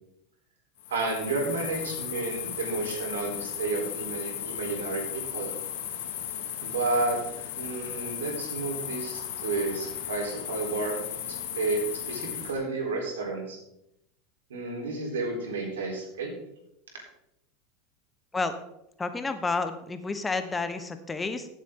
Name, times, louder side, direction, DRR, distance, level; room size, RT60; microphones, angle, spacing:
sound 1, 0.8-12.5, left 10 dB, 75° left, 1.9 m, -36 dB
voice 1, 0.9-5.5 6.6-7.2 7.6-11.0 11.3-13.6 14.5-16.3, right 3 dB, 90° right, 0 dB, 3.7 m, -31 dB
voice 2, 19.0-21.5, left 3 dB, 15° left, 9 dB, 1.0 m, -30 dB
15.5 x 7.4 x 3.7 m, 0.83 s
hypercardioid pair, 105°, 0 cm